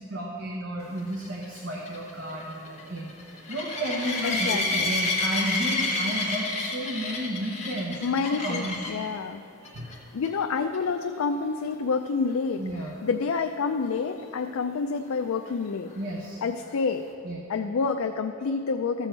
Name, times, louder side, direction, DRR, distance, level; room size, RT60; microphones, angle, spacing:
voice 1, 0.0-8.0 8.3-8.9 9.6-9.9 12.6-12.9 15.9-16.4 17.2-17.4, right 1 dB, 55° right, -3 dB, 1.0 m, -32 dB
sound 1, 1.1-9.1 9.6-10.0 10.2-10.3 10.7-10.8 14.4-14.5, left 2 dB, 30° left, 1.3 m, -30 dB
voice 2, 4.2-4.9 8.0-9.4 10.1-12.6 13.0-15.9 16.4-17.1 17.5-19.1, left 5 dB, 85° left, 5 dB, 0.4 m, -28 dB
13.5 x 6.9 x 4.5 m, 2.6 s
head